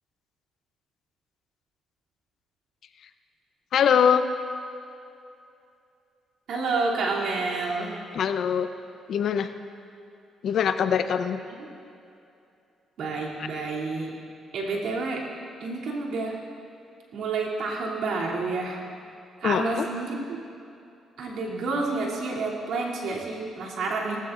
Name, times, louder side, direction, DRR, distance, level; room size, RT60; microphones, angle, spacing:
voice 1, 3.7-4.3 8.1-8.7 9.1-9.5 10.4-11.4 19.4-19.9, left 7 dB, 65° left, 9 dB, 0.7 m, -22 dB
voice 2, 6.5-7.9 11.6-11.7 13.0-14.1 14.5-15.2 15.6-16.4 17.1-18.8 19.4-20.2 21.2-24.2, right 3 dB, 75° right, -4 dB, 2.9 m, -29 dB
19.0 x 15.0 x 2.6 m, 2.6 s
cardioid pair, 90°, 0 cm